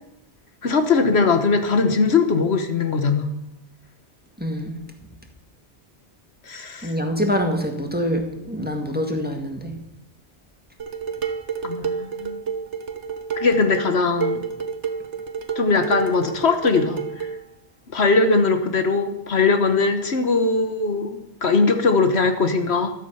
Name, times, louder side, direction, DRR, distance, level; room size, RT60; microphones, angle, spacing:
voice 1, 0.6-3.3 6.5-6.9 11.6-12.4 13.4-14.4 15.5-17.0 17.9-22.9, left 4 dB, 70° left, 8 dB, 1.5 m, -20 dB
voice 2, 4.4-4.8 6.8-9.8, equal, 10° right, 3 dB, 1.9 m, -25 dB
Dishes pots and pans, 10.8-17.4, right 6 dB, 85° right, 1.5 m, -29 dB
14.0 x 12.5 x 5.6 m, 0.84 s
omnidirectional pair, 1.1 m